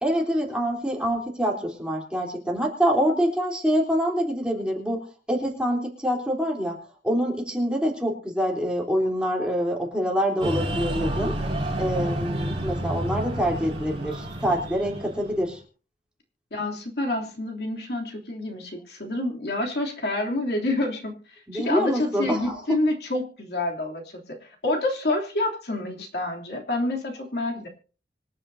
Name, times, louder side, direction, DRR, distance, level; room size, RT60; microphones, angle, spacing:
voice 1, 0.0-6.8 7.0-11.3 11.8-15.6 21.5-22.6, equal, 5° right, -1 dB, 3.5 m, -25 dB
Breathing, 10.4-15.6, right 1 dB, 30° right, 5.0 m, -30 dB
voice 2, 16.5-27.7, left 2 dB, 65° left, 0 dB, 3.2 m, -28 dB
26.0 x 9.8 x 2.8 m, 0.38 s
head